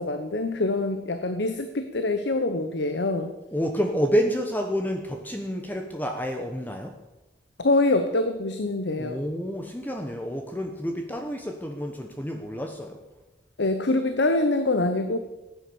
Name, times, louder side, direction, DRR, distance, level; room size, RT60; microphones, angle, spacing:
voice 1, 0.0-3.3 7.6-9.2 13.6-15.2, left 2 dB, 75° left, 8 dB, 1.0 m, -25 dB
voice 2, 3.5-6.9 9.0-13.0, equal, 10° left, 4 dB, 0.9 m, -29 dB
15.5 x 9.7 x 7.0 m, 1.1 s
head